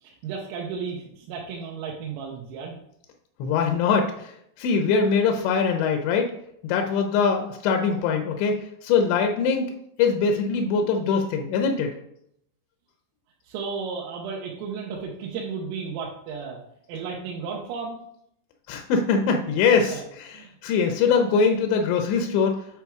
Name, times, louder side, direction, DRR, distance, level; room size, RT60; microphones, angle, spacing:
voice 1, 0.0-2.8 13.5-16.6 16.9-18.0 19.7-20.0 20.3-20.5, right 5 dB, 90° right, -3 dB, 3.5 m, -34 dB
voice 2, 3.4-4.3 4.6-6.3 6.6-9.7 10.0-11.9 18.7-22.5, left 5 dB, 90° left, 4 dB, 2.5 m, -22 dB
8.2 x 4.6 x 3.5 m, 0.72 s
omnidirectional pair, 5.9 m